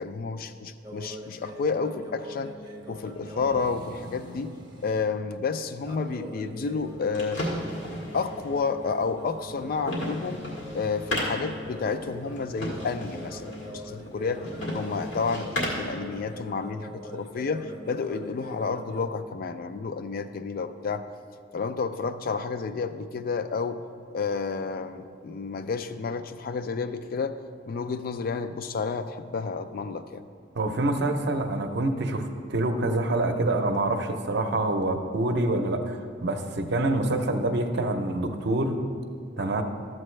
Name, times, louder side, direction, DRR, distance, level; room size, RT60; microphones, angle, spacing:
voice 1, 0.0-2.5 2.9-4.5 4.8-7.4 8.1-10.5 10.7-14.5 14.7-21.1 21.5-23.8 24.1-27.3 27.7-30.2 39.4-39.5, left 5 dB, 50° left, 10 dB, 0.4 m, -30 dB
sound 1, 0.8-4.4 5.8-19.1, equal, 20° right, 0.7 m, -43 dB
sound 2, 2.9-6.5, left 1 dB, 70° left, 1.7 m, -45 dB
sound 3, 6.7-16.0, left 1 dB, 90° left, 1.9 m, -35 dB
voice 2, 30.6-38.8 39.4-39.6, right 2 dB, 60° right, 6 dB, 0.7 m, -26 dB
12.5 x 7.6 x 3.2 m, 2.2 s
head